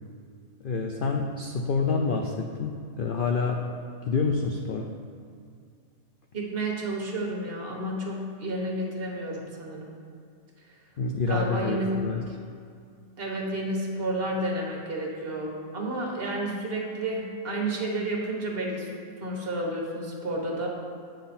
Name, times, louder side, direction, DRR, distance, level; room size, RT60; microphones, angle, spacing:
voice 1, 0.6-3.7 4.0-4.9 11.0-12.2, left 4 dB, 65° left, 2 dB, 0.5 m, -27 dB
voice 2, 6.3-10.0 11.3-12.1 13.2-18.9 19.2-20.7, right 1 dB, 45° right, -1 dB, 1.3 m, -31 dB
8.4 x 5.9 x 4.2 m, 2.3 s
omnidirectional pair, 1.5 m